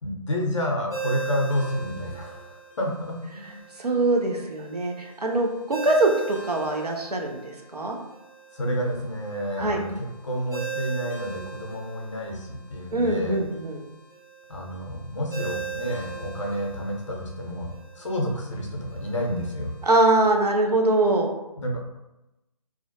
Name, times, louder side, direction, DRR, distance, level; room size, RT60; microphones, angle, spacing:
voice 1, 0.0-3.7 8.5-13.4 14.5-19.7 21.6-21.8, equal, 50° left, 0 dB, 0.6 m, -30 dB
Ringtone, 0.9-20.0, right 5 dB, 5° left, 0.3 m, -40 dB
voice 2, 3.8-8.0 9.6-9.8 12.9-13.8 19.8-21.3, right 2 dB, 90° right, 2 dB, 0.5 m, -23 dB
2.4 x 2.1 x 2.6 m, 0.96 s
figure-of-eight pair, 150°, 19 cm